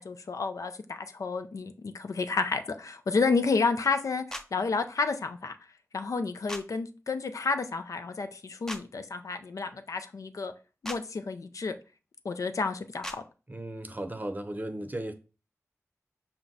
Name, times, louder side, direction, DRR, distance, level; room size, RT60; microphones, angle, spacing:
voice 1, 0.0-4.2 4.5-5.6 5.9-10.5 10.8-11.7 12.2-13.2, left 4 dB, 75° left, 0.4 m, -30 dB
sound 1, 4.3-4.5 6.5-6.6 8.7-8.8 10.8-11.0 13.0-13.2, equal, 10° left, 0.5 m, -37 dB
voice 2, 13.5-15.1, right 1 dB, 30° right, 0.6 m, -36 dB
5.8 x 2.1 x 3.9 m
cardioid pair, 45°, 6 cm